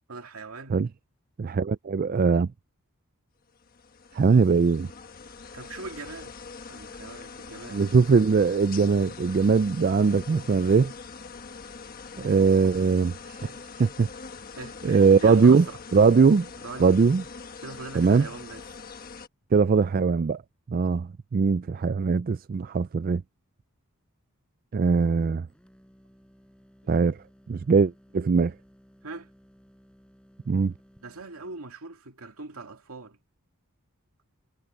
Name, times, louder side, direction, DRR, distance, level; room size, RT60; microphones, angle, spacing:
voice 1, 0.1-0.8 5.5-6.4 6.7-7.9 14.5-15.8 16.6-17.0 17.6-18.6 26.8-27.1 29.0-29.3 31.0-33.2, right 3 dB, 80° right, 2.5 m, -41 dB
voice 2, 1.4-2.5 4.1-4.9 7.7-10.9 12.2-13.1 13.4-13.5 13.8-14.1 14.8-15.6 15.9-16.5 16.8-17.2 18.0-18.3 19.5-20.4 20.7-23.2 24.7-25.5 26.9-27.2 27.5-28.5 30.5-30.7, right 5 dB, 40° right, 0.3 m, -21 dB
sound 1, 3.5-19.3, left 5 dB, 40° left, 1.3 m, -43 dB
sound 2, 25.5-31.7, equal, 5° left, 7.8 m, -58 dB
head